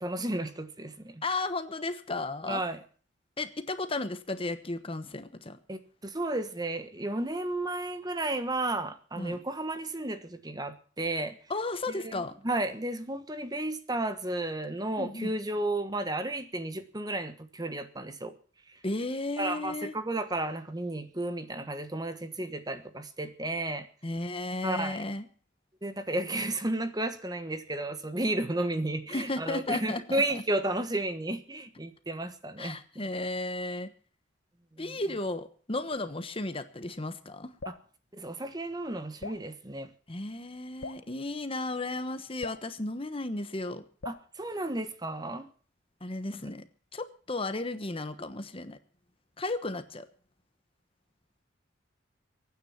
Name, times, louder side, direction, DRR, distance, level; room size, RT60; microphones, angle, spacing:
voice 1, 0.0-1.2 2.5-2.8 5.7-11.4 11.9-18.3 19.4-23.9 24.6-25.0 25.8-33.0 34.8-35.0 38.1-39.9 44.0-45.5, right 1 dB, 20° right, 10 dB, 1.3 m, -33 dB
voice 2, 1.2-2.6 3.4-5.6 9.2-9.4 11.5-12.3 15.0-15.3 18.8-19.9 24.0-25.3 29.1-30.4 32.6-33.9 34.8-37.5 40.1-43.8 46.0-46.6 46.9-48.8 49.4-50.0, left 2 dB, 30° left, 10 dB, 1.2 m, -34 dB
Drip, 37.6-37.9 39.2-39.5 40.8-41.1 42.4-42.7 44.0-44.3, left 3 dB, 70° left, 1.0 m, -41 dB
23.0 x 9.6 x 5.8 m, 0.43 s
head